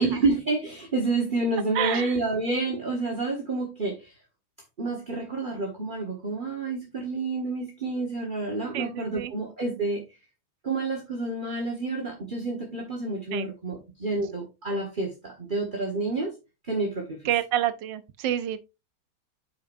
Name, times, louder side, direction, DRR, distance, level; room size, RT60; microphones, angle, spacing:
voice 1, 0.0-4.1 4.8-10.0 10.6-16.3 16.7-17.2, right 3 dB, 25° right, 1.4 m, -29 dB
voice 2, 1.8-2.1 8.7-9.3 13.3-13.5 17.2-18.6, right 11 dB, 70° right, 1.3 m, -28 dB
8.6 x 5.9 x 2.6 m
omnidirectional pair, 2.3 m